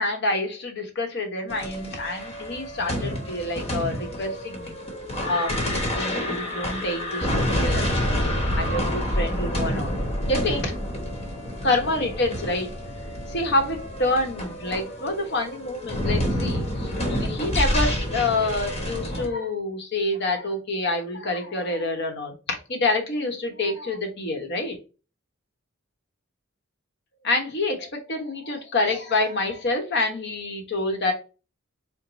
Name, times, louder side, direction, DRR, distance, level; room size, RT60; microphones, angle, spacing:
voice 1, 0.0-4.8 5.2-8.3 8.5-9.9 10.2-10.7 11.6-12.7 13.3-24.7 27.2-31.1, left 2 dB, 55° left, 3 dB, 1.0 m, -27 dB
sound 1, 1.5-19.3, equal, 30° left, 1.1 m, -28 dB
4.6 x 2.1 x 3.8 m, 0.33 s
head